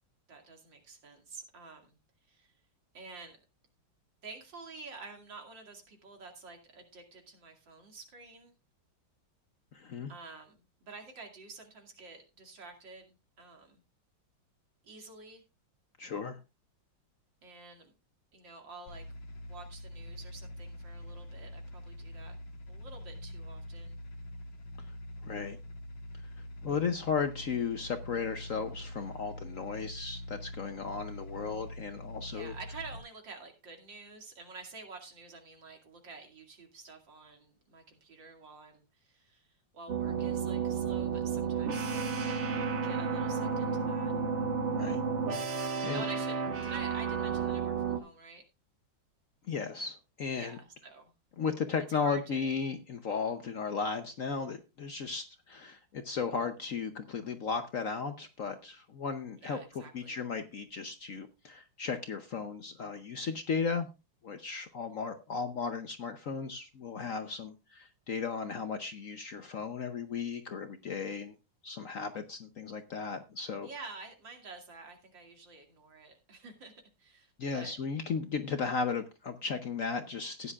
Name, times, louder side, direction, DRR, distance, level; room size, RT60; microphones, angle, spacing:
voice 1, 0.3-2.0 2.3-2.5 2.9-3.4 4.2-8.5 10.1-13.8 14.8-15.4 17.4-17.9 18.3-19.0 19.5-22.3 22.7-24.0 32.3-42.2 42.7-44.1 45.9-48.4 50.3-51.1 51.9-52.5 59.4-60.2 73.6-76.7 77.0-77.8, right 3 dB, 70° right, 3 dB, 3.0 m, -49 dB
voice 2, 9.7-10.1 16.0-16.4 25.2-25.6 26.6-32.5 44.8-45.0 45.5-46.0 49.5-50.6 51.4-59.6 59.9-63.9 64.2-71.4 71.6-73.7 77.4-80.5, left 5 dB, 55° left, 8 dB, 1.0 m, -35 dB
sound 1, 18.9-33.0, left 1 dB, 80° left, 2.4 m, -44 dB
sound 2, 39.9-48.0, right 5 dB, 40° right, 1.3 m, -32 dB
15.0 x 10.0 x 2.4 m, 0.27 s
omnidirectional pair, 2.1 m